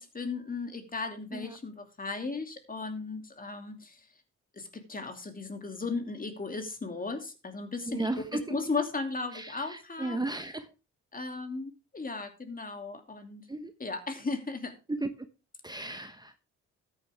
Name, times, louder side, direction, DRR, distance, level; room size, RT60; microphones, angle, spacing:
voice 1, 0.0-4.0 4.5-8.2 8.5-10.2 11.1-13.5 13.8-14.7, left 3 dB, 30° left, 7 dB, 2.6 m, -36 dB
voice 2, 7.9-8.6 9.3-10.7 13.5-13.7 14.9-15.1 15.6-16.4, right 2 dB, 15° right, 9 dB, 1.0 m, -34 dB
13.5 x 9.3 x 3.4 m, 0.30 s
supercardioid pair, 65°, 30 cm